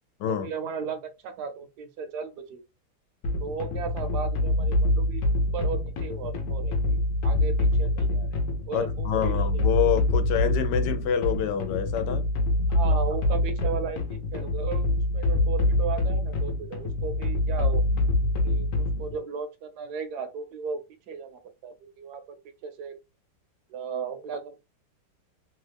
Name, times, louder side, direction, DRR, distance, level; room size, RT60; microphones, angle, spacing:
voice 1, 0.3-2.6 3.4-5.2 5.5-8.3 8.7-9.7 12.7-17.8 18.4-20.8 21.1-22.9 23.7-24.6, right 6 dB, 75° right, 1.1 m, -36 dB
sound 1, 3.2-19.2, left 1 dB, 60° left, 1.0 m, -25 dB
voice 2, 8.7-12.2, left 9 dB, 80° left, 1.2 m, -27 dB
3.1 x 2.3 x 3.3 m
omnidirectional pair, 1.8 m